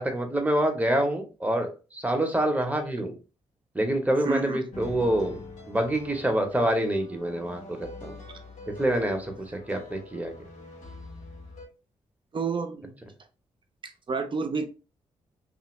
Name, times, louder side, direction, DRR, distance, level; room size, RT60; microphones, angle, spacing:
voice 1, 0.0-3.1 3.7-8.2 8.8-10.3, right 1 dB, 10° right, 0.9 m, -26 dB
voice 2, 4.2-4.6 12.3-13.0 13.8-14.7, right 4 dB, 40° right, 0.6 m, -30 dB
sound 1, 4.7-11.7, left 3 dB, 70° left, 0.9 m, -44 dB
2.7 x 2.5 x 3.0 m
hypercardioid pair, 40°, 13 cm